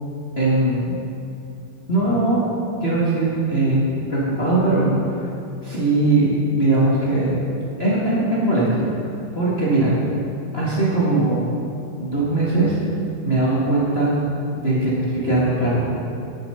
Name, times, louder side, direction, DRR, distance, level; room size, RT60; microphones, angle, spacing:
voice 1, 0.4-1.0 1.9-2.5 2.8-3.8 4.1-5.2 5.6-7.3 7.8-8.8 9.3-9.9 10.5-11.5 12.0-12.8 13.2-14.1 14.5-15.9, right 2 dB, 35° left, -7 dB, 1.0 m, -20 dB
10.5 x 7.1 x 5.4 m, 2.7 s
omnidirectional pair, 3.5 m